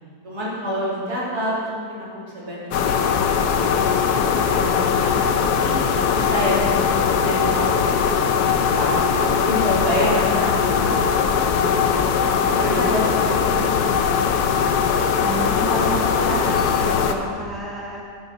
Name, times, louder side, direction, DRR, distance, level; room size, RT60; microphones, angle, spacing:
voice 1, 0.2-3.1 3.4-5.7 6.1-8.9 9.3-14.8, equal, 70° right, -7 dB, 3.6 m, -28 dB
sound 1, 2.7-17.1, left 6 dB, 75° left, 1.2 m, -20 dB
voice 2, 15.2-18.0, right 1 dB, ahead, -5 dB, 1.8 m, -29 dB
11.0 x 9.1 x 5.6 m, 2.1 s
omnidirectional pair, 1.7 m